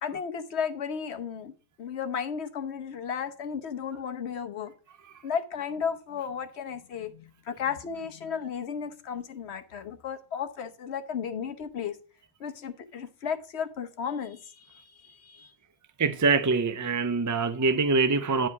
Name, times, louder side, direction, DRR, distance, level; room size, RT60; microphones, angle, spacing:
voice 1, 0.0-1.5 1.8-4.7 5.2-12.0 12.4-15.5, left 7 dB, 90° left, 1.2 m, -34 dB
voice 2, 16.0-18.5, right 4 dB, 30° right, 0.3 m, -24 dB
9.9 x 4.9 x 4.7 m
omnidirectional pair, 1.1 m